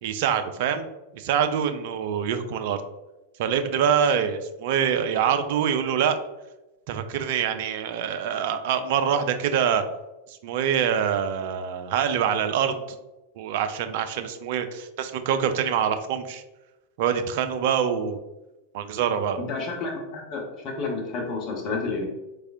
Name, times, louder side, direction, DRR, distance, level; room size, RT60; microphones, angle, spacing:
voice 1, 0.0-0.9 1.1-2.8 3.4-6.2 6.9-9.8 10.3-12.8 13.4-16.4 17.0-18.2 18.7-19.4, right 8 dB, 50° right, 8 dB, 0.3 m, -25 dB
voice 2, 19.4-22.1, left 3 dB, 35° left, -1 dB, 1.0 m, -30 dB
3.6 x 3.2 x 2.6 m, 1.0 s
figure-of-eight pair, 90°, 0 cm